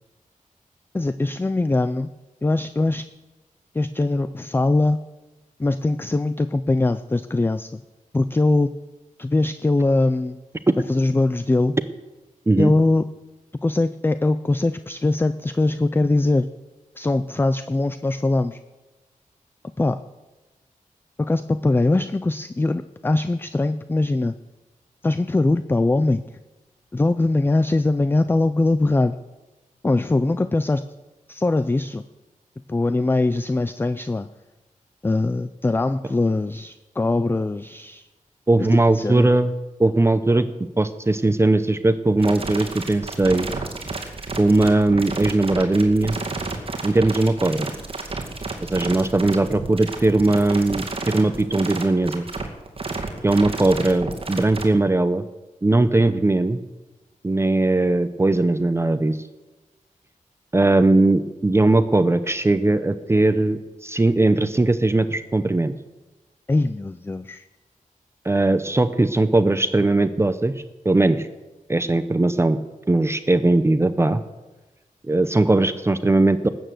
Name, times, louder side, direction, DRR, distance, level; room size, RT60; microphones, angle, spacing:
voice 1, 0.9-2.1 2.4-3.1 3.7-5.0 5.6-7.8 8.1-8.7 9.2-10.4 10.9-11.8 12.6-13.0 13.6-16.5 17.0-18.6 19.8-20.0 21.2-24.3 25.0-26.2 26.9-29.2 29.8-30.8 31.3-32.0 32.7-34.3 35.0-38.1 38.6-38.7 38.9-39.3 66.5-67.4, left 2 dB, 15° left, 13 dB, 0.4 m, -21 dB
voice 2, 38.5-39.5 39.8-40.5 40.8-43.5 44.4-46.2 46.8-47.7 48.7-52.2 53.2-55.2 55.6-56.6 57.2-59.2 60.5-65.7 68.2-70.5 70.8-71.3 71.7-72.6 72.9-74.2 75.0-76.5, right 2 dB, 20° right, 11 dB, 0.7 m, -19 dB
sound 1, 42.2-54.6, right 3 dB, 40° right, 2.3 m, -31 dB
19.5 x 9.1 x 7.8 m, 1.1 s
wide cardioid pair, 160°, 14 cm